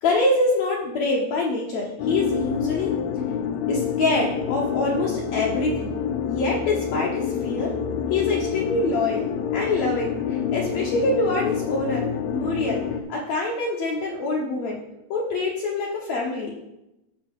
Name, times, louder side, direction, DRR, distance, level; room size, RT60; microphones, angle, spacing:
voice 1, 0.0-2.9 3.7-5.9 6.3-7.7 8.1-12.0 12.3-12.8 13.1-14.8 15.1-16.5, left 2 dB, 65° left, -3 dB, 1.7 m, -25 dB
sound 1, 2.0-13.0, left 7 dB, 85° left, 2.4 m, -27 dB
15.0 x 5.4 x 3.7 m, 0.90 s
omnidirectional pair, 4.5 m